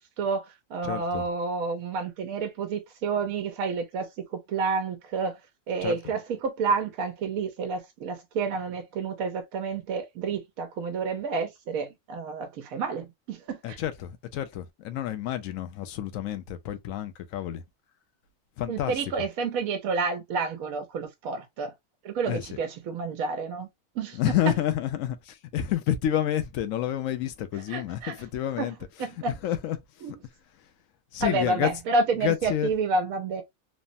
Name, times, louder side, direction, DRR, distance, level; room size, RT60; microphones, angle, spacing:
voice 1, 0.0-5.4 5.7-13.8 18.7-21.7 22.0-23.7 23.9-24.2 27.5-28.1 28.6-29.4 30.0-30.2 31.2-33.4, right 4 dB, 90° right, 1.0 m, -30 dB
voice 2, 0.8-1.2 5.8-6.0 13.6-17.6 18.6-19.1 22.3-22.5 24.1-29.8 31.1-31.7 32.1-32.7, left 11 dB, 75° left, 1.0 m, -29 dB
3.2 x 2.0 x 2.5 m
omnidirectional pair, 1.4 m